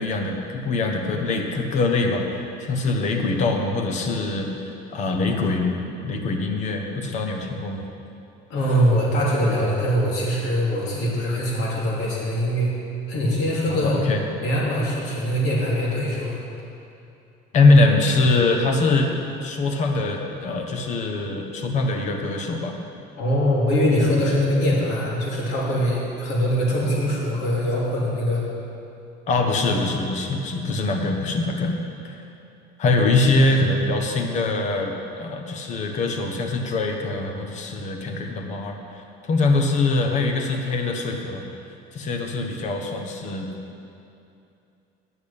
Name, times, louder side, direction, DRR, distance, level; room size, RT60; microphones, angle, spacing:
voice 1, 0.0-5.6 6.0-7.8 13.7-14.2 17.5-19.1 19.4-22.7 29.3-31.8 32.1-32.2 32.8-39.0 39.3-41.4 41.9-43.5, left 2 dB, 40° left, 3 dB, 1.2 m, -23 dB
voice 2, 8.5-12.7 13.1-14.0 14.4-16.4 23.2-28.4 29.7-29.8, equal, 65° left, -5 dB, 2.9 m, -22 dB
10.5 x 7.2 x 8.6 m, 2.7 s
cardioid pair, 175°, 19 cm